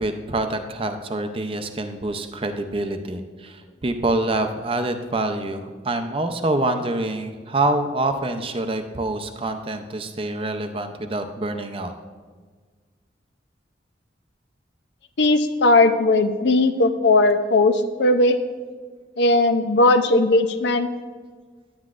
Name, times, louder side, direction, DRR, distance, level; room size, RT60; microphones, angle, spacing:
voice 1, 0.0-11.9, right 2 dB, 30° right, 7 dB, 0.6 m, -26 dB
voice 2, 15.2-17.7 18.0-18.4 19.2-20.9, left 2 dB, 70° left, 9 dB, 0.5 m, -17 dB
10.5 x 9.6 x 2.5 m, 1.5 s
head